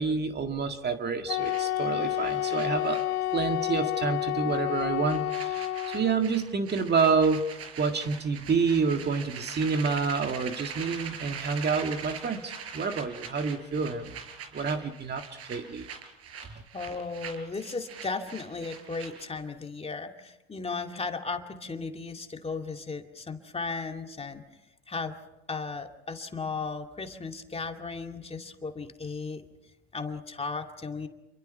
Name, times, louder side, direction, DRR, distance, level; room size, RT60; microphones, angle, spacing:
voice 1, 0.0-3.0 3.3-7.5 7.8-14.2 14.5-15.2 15.5-15.9, right 5 dB, 35° right, 6 dB, 2.0 m, -28 dB
Wind instrument woodwind instrument, 1.3-6.2, left 13 dB, 60° left, 1.2 m, -29 dB
sound 1, 1.4-3.7 3.9-4.2 4.5-19.4, right 6 dB, 50° right, 5.0 m, -42 dB
voice 2, 16.7-24.4 24.9-25.1 25.5-29.4 29.9-31.1, left 4 dB, 20° left, 4 dB, 2.4 m, -35 dB
28.5 x 23.0 x 5.7 m, 0.95 s
supercardioid pair, 85°, 31 cm